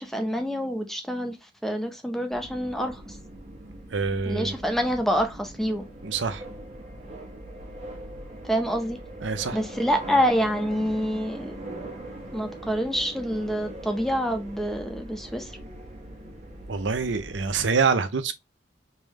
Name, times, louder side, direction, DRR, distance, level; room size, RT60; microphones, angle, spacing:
voice 1, 0.0-1.4 1.6-3.2 4.3-5.9 8.4-9.0 9.5-11.5 12.3-15.5, equal, ahead, 0.7 m, -27 dB
sound 1, 2.3-17.6, right 1 dB, 35° right, 1.1 m, -41 dB
voice 2, 3.9-4.6 6.0-6.5 9.2-9.6 16.7-18.3, right 5 dB, 80° right, 0.6 m, -26 dB
3.4 x 3.4 x 3.2 m
head